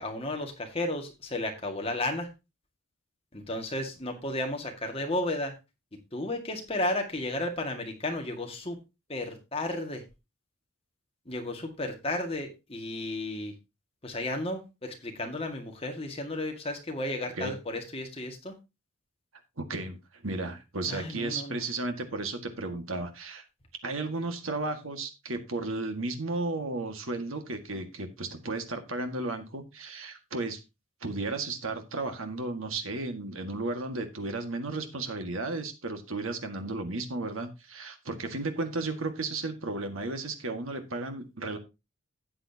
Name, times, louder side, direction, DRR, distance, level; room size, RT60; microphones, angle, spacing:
voice 1, 0.0-2.3 3.3-5.6 6.1-8.8 9.1-10.0 11.3-13.5 14.0-18.6 20.8-21.6, left 1 dB, 30° left, 3 dB, 1.9 m, -33 dB
voice 2, 19.6-23.5 23.8-30.6 31.0-41.6, right 2 dB, 90° right, 6 dB, 1.9 m, -34 dB
13.0 x 8.9 x 2.9 m, 0.26 s
head